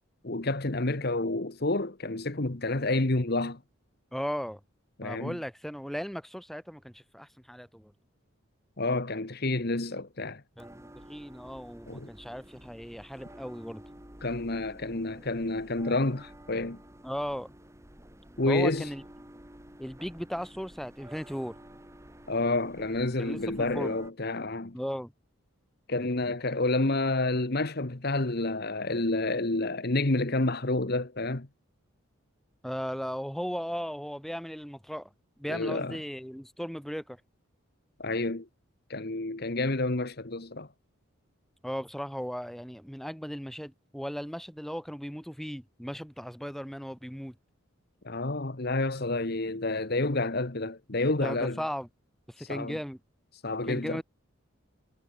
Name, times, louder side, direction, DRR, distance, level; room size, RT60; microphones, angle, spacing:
voice 1, 0.2-3.6 5.0-5.4 8.8-10.4 11.9-12.1 14.2-16.8 18.4-18.9 22.3-24.7 25.9-31.5 35.5-36.0 38.0-38.5 38.9-40.7 48.0-51.6 52.4-52.8 53.4-54.0, left 2 dB, 50° left, 1.4 m, -29 dB
voice 2, 4.1-4.6 5.0-7.9 10.6-13.8 17.0-17.5 18.5-19.0 19.8-21.5 23.2-23.9 24.7-25.1 32.6-35.1 35.4-37.2 41.6-47.3 51.2-51.9 52.3-53.0 53.7-54.0, equal, ahead, 2.4 m, -36 dB
sound 1, 10.6-24.1, right 1 dB, 15° right, 3.1 m, -51 dB
head